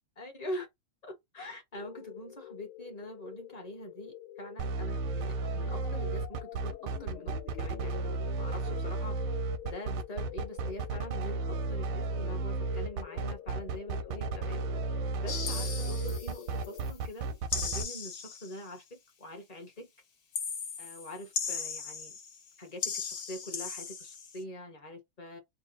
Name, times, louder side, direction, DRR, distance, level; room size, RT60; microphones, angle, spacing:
voice 1, 0.2-0.7 1.0-9.2 9.6-14.6 15.2-19.9 20.8-22.2 22.6-25.4, left 1 dB, 40° left, 0.6 m, -44 dB
sound 1, 1.7-16.9, left 12 dB, 85° left, 1.6 m, -47 dB
sound 2, 4.6-17.8, right 3 dB, 85° right, 1.5 m, -33 dB
sound 3, 15.3-16.9 17.5-18.7 20.3-22.5 22.8-24.4, left 6 dB, 65° left, 1.4 m, -37 dB
4.1 x 2.0 x 3.9 m
omnidirectional pair, 2.3 m